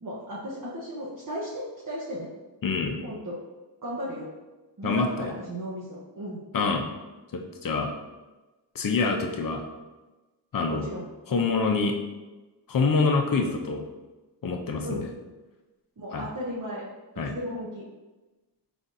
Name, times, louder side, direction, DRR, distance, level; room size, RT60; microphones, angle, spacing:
voice 1, 0.0-2.3 3.0-3.4 3.8-4.3 4.8-6.4 10.7-11.1 14.8-15.0 16.0-16.9 17.1-17.8, equal, 50° right, -7 dB, 0.8 m, -35 dB
voice 2, 2.6-3.0 4.8-5.3 6.5-6.9 7.3-7.9 8.7-9.6 10.5-10.9 11.3-11.9 12.7-13.8 14.4-15.0 16.1-16.2 17.2-17.3, left 4 dB, 55° left, 3 dB, 0.6 m, -26 dB
4.0 x 3.4 x 2.6 m, 1.1 s
wide cardioid pair, 45°, 41 cm